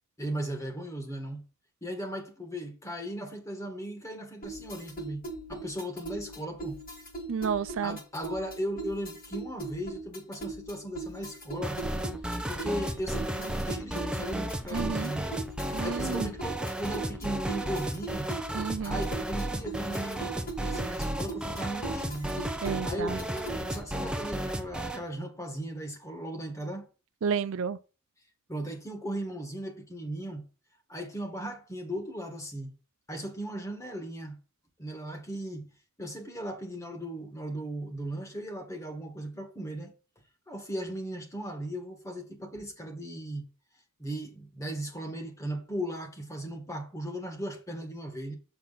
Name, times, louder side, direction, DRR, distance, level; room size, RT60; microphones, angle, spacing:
voice 1, 0.2-1.4 1.8-5.2 5.5-6.8 7.8-11.8 12.5-15.3 15.8-18.3 18.8-22.3 22.8-26.9 28.5-30.4 30.9-32.7 33.1-34.4 34.8-35.7 36.0-39.9 40.5-43.5 44.0-48.4, right 1 dB, 15° left, 1.7 m, -37 dB
sound 1, 4.4-24.0, right 2 dB, 45° left, 1.9 m, -41 dB
voice 2, 7.3-8.0 14.7-15.1 15.7-16.3 18.5-19.0 22.6-23.2 27.2-27.8, right 6 dB, 65° right, 0.4 m, -31 dB
sound 2, 11.6-25.0, right 1 dB, 5° right, 0.8 m, -34 dB
7.2 x 6.6 x 4.1 m
head